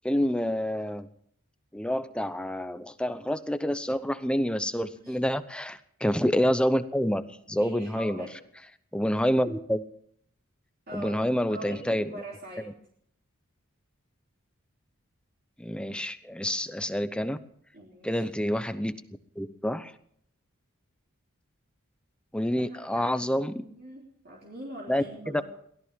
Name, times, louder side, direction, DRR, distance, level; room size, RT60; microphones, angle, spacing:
voice 1, 0.0-1.1 1.7-8.3 8.9-9.8 10.9-12.2 15.6-17.4 18.0-19.0 19.4-19.9 22.3-23.6 24.9-25.4, equal, 5° left, 11 dB, 0.8 m, -28 dB
voice 2, 7.6-8.4 10.9-12.7 17.7-18.3 22.6-25.4, right 2 dB, 45° right, -3 dB, 3.4 m, -43 dB
23.0 x 16.5 x 3.7 m, 0.65 s
head